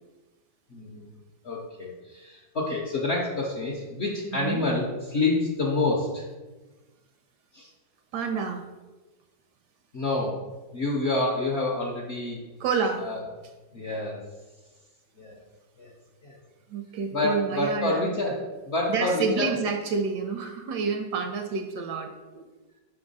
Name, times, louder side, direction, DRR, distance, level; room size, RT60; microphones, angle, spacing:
voice 1, 0.7-1.1 1.4-6.3 7.5-7.7 9.9-10.4 10.7-12.4 13.0-13.2 13.7-14.2 15.2-15.4 15.8-15.9 16.2-16.3 17.1-19.5, left 2 dB, 55° left, -2 dB, 0.7 m, -28 dB
voice 2, 4.3-4.7 8.1-8.6 12.6-13.1 16.7-18.2 18.9-22.5, right 5 dB, 75° right, 5 dB, 1.1 m, -29 dB
5.4 x 3.5 x 5.3 m, 1.2 s
omnidirectional pair, 2.0 m